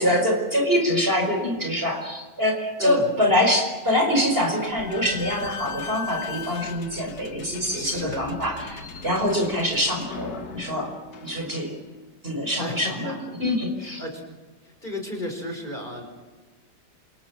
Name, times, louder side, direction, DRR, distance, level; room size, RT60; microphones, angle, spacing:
voice 1, 0.0-10.9 11.2-11.8 12.2-13.1 13.4-14.0, left 1 dB, 30° right, 3 dB, 5.4 m, -24 dB
voice 2, 2.8-3.1 7.7-8.3 12.6-13.2 13.8-14.2 14.6-16.0, left 1 dB, 25° left, 3 dB, 5.4 m, -33 dB
Slam / Squeak, 4.6-11.9, left 5 dB, 60° left, 2.1 m, -38 dB
28.5 x 28.0 x 6.4 m, 1.2 s
omnidirectional pair, 1.9 m